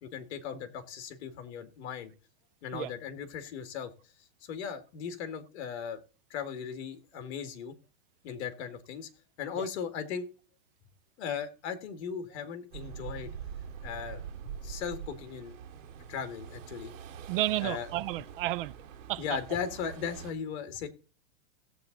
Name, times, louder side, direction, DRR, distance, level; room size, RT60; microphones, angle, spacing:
voice 1, 0.0-2.1 2.6-3.9 4.4-6.0 6.3-7.8 8.2-9.1 9.4-10.3 11.2-13.3 13.8-15.6 16.1-16.9 17.6-17.9 19.2-20.9, left 7 dB, 55° left, 2.1 m, -37 dB
sound 1, 12.7-20.3, right 8 dB, 70° right, 2.3 m, -44 dB
voice 2, 17.3-18.7 19.1-19.2, right 15 dB, 45° right, 0.6 m, -31 dB
16.5 x 7.7 x 3.9 m
supercardioid pair, 165°, 39 cm